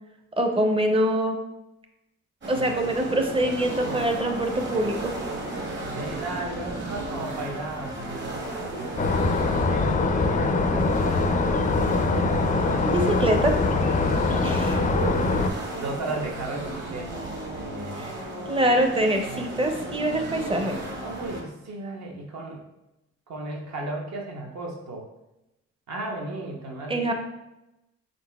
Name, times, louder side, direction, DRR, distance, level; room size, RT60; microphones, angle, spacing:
voice 1, 0.4-1.4 2.5-5.2 12.9-13.6 14.4-14.8 18.0-18.1 18.5-20.8 26.9-27.1, right 1 dB, 20° right, 4 dB, 0.5 m, -24 dB
sound 1, 2.4-21.4, right 1 dB, 40° right, 1.0 m, -35 dB
voice 2, 6.0-12.9 14.7-15.2 15.5-17.3 17.6-18.1 21.0-22.7 23.3-25.0 25.9-27.1, right 2 dB, 65° right, 0 dB, 0.9 m, -35 dB
sound 2, 9.0-15.5, left 3 dB, 25° left, 0.4 m, -23 dB
4.0 x 3.9 x 2.2 m, 0.93 s
cardioid pair, 90°, 30 cm